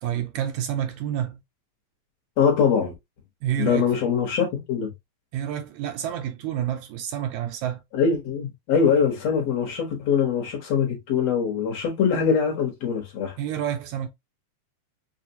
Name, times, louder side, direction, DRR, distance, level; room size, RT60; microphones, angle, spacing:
voice 1, 0.0-1.4 3.4-3.9 5.3-7.8 13.4-14.1, right 10 dB, 80° right, 1.9 m, -29 dB
voice 2, 2.4-2.9 3.6-4.9 7.9-13.4, left 6 dB, 60° left, 2.2 m, -23 dB
6.1 x 2.5 x 2.7 m
omnidirectional pair, 3.6 m